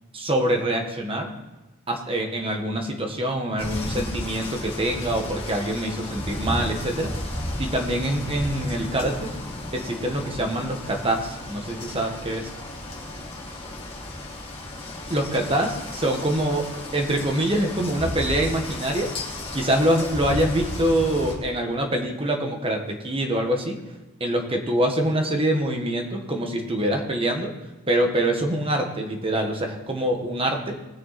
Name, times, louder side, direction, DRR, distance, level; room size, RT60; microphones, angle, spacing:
voice 1, 0.1-1.3 1.9-7.1 7.6-9.3 9.7-12.5 15.1-19.1 19.5-23.8 24.2-27.5 27.9-30.7, right 1 dB, 25° right, 2 dB, 1.6 m, -25 dB
sound 1, 3.6-21.3, left 1 dB, 25° left, 2.7 m, -33 dB
19.5 x 6.8 x 4.2 m, 1.1 s
head